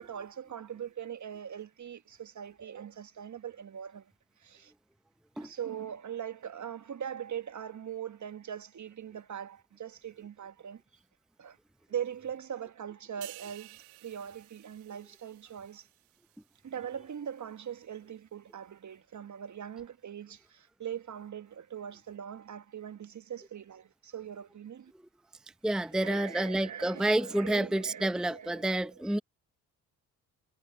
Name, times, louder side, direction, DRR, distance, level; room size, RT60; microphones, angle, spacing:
voice 1, 0.0-4.1 4.4-4.7 5.4-10.8 11.4-11.6 11.9-15.9 16.6-24.9 25.8-29.0, right 9 dB, 40° right, 1.4 m, -41 dB
sound 1, 13.2-16.7 17.1-17.3, right 22 dB, 85° right, 2.4 m, -53 dB
voice 2, 25.6-29.2, right 1 dB, ahead, 0.8 m, -29 dB
hypercardioid pair, 50°, 43 cm